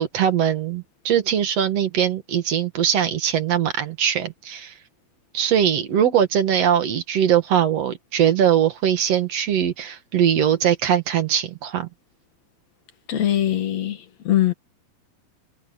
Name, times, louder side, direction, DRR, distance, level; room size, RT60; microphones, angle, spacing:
voice 1, 0.0-4.7 5.3-11.9, right 9 dB, 50° right, 2.3 m, -21 dB
voice 2, 13.1-14.5, left 12 dB, 50° left, 2.8 m, -22 dB
omnidirectional pair, 4.4 m